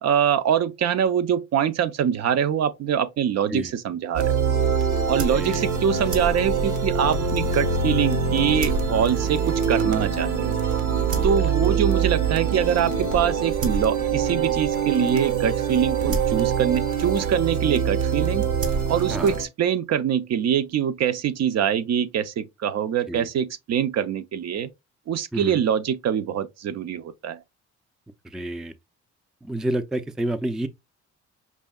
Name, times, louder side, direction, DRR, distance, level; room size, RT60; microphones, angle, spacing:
voice 1, 0.0-4.4 5.1-10.5 11.2-18.5 18.9-24.7 25.1-27.4, right 8 dB, 60° right, 0.5 m, -24 dB
sound 1, 4.1-19.4, right 6 dB, 90° right, 1.0 m, -24 dB
voice 2, 5.3-5.6 11.2-11.8 16.1-16.2 19.1-19.4 23.1-23.3 25.3-25.6 28.2-28.7 29.4-30.7, right 1 dB, ahead, 0.3 m, -30 dB
5.4 x 2.7 x 2.3 m
cardioid pair, 90°, 30 cm